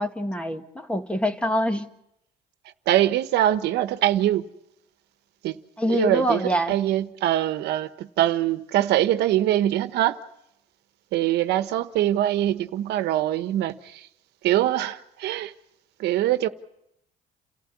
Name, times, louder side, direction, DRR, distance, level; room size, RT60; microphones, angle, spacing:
voice 1, 0.0-1.9 5.8-6.7, equal, 5° left, 1.8 m, -25 dB
voice 2, 2.9-4.5 5.4-5.6 5.9-10.2 11.1-14.1 14.4-15.5 16.0-16.5, right 13 dB, 80° right, 1.3 m, -23 dB
29.5 x 14.5 x 9.6 m
cardioid pair, 110°, 17 cm